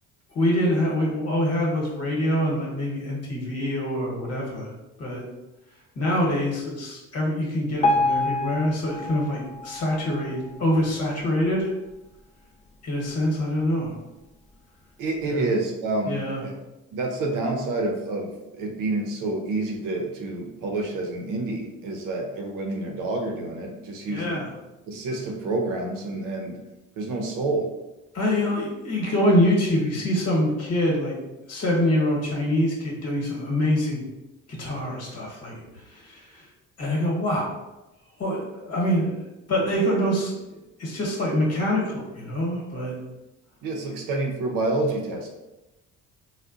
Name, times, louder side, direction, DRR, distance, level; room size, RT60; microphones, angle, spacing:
voice 1, 0.3-4.7 5.0-5.3 5.9-11.7 12.8-14.0 15.2-15.5 16.1-16.4 24.1-24.5 28.1-31.2 31.5-34.0 34.5-36.5 36.8-37.5 38.2-39.2 39.5-43.0, equal, 50° left, -2 dB, 1.1 m, -25 dB
Piano, 7.8-10.9 11.4-11.6 11.9-12.0 12.7-12.8 13.4-13.5, left 2 dB, 20° left, 0.3 m, -27 dB
voice 2, 15.0-16.6 16.9-24.5 24.9-26.6 27.0-27.7 43.6-45.3, right 2 dB, 75° right, 1 dB, 0.6 m, -28 dB
3.6 x 2.1 x 2.4 m, 1.0 s
cardioid pair, 95°, 33 cm